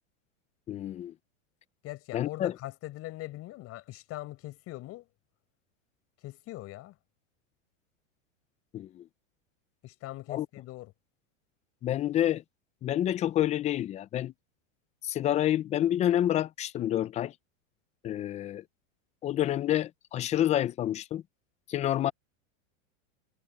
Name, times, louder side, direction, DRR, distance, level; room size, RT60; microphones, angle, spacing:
voice 1, 0.7-1.1 2.1-2.5 8.7-9.0 10.3-10.5 11.8-12.4 12.8-14.3 15.0-17.3 18.0-18.6 19.2-21.2 21.7-22.1, left 12 dB, 20° left, 0.5 m, -28 dB
voice 2, 1.8-5.1 6.2-7.0 9.8-10.9, left 17 dB, 40° left, 5.3 m, -41 dB
supercardioid pair, 140°, 38 cm